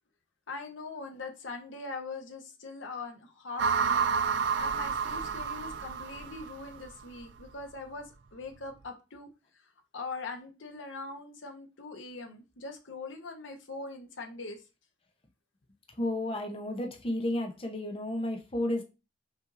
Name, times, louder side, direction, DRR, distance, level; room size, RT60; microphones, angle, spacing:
voice 1, 0.5-4.1 4.6-9.3 9.9-14.6, left 3 dB, 80° left, 0.8 m, -42 dB
sound 1, 3.6-6.9, right 6 dB, 70° right, 0.4 m, -30 dB
voice 2, 16.0-18.8, left 1 dB, 30° left, 0.7 m, -32 dB
5.6 x 2.6 x 2.5 m
head